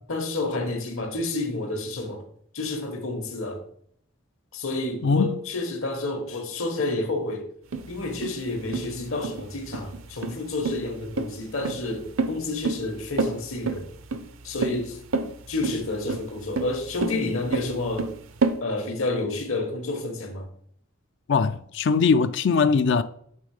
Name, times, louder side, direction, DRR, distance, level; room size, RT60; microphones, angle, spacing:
voice 1, 0.1-2.2 2.5-3.6 4.5-7.5 7.9-13.9 14.4-15.0 15.5-18.1 18.6-20.5, left 2 dB, 75° left, 1.5 m, -29 dB
voice 2, 5.0-5.4 21.3-23.0, left 5 dB, 55° left, 0.4 m, -21 dB
sound 1, 7.7-18.6, right 3 dB, 70° right, 0.6 m, -29 dB
8.3 x 3.7 x 4.9 m
head